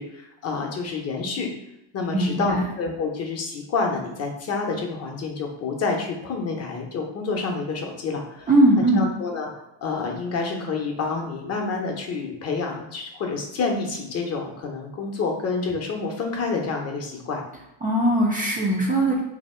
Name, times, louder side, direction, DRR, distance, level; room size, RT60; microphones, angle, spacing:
voice 1, 0.0-1.5 1.9-8.5 8.9-9.5 9.8-17.4, left 4 dB, 35° left, 1 dB, 0.7 m, -28 dB
voice 2, 2.1-2.7 8.5-9.0 17.8-19.2, right 1 dB, 20° right, -3 dB, 0.4 m, -20 dB
2.9 x 2.7 x 4.2 m, 0.88 s
cardioid pair, 140°, 46 cm